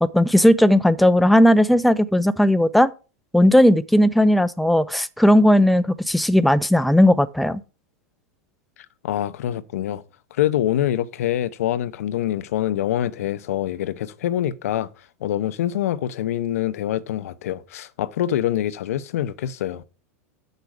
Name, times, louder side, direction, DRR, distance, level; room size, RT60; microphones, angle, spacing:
voice 1, 0.0-2.9 3.3-7.6, equal, ahead, 0.5 m, -16 dB
voice 2, 9.0-10.0 10.3-14.9 15.2-19.8, left 12 dB, 75° left, 0.7 m, -25 dB
8.1 x 6.7 x 4.8 m
hypercardioid pair, 110°, 8 cm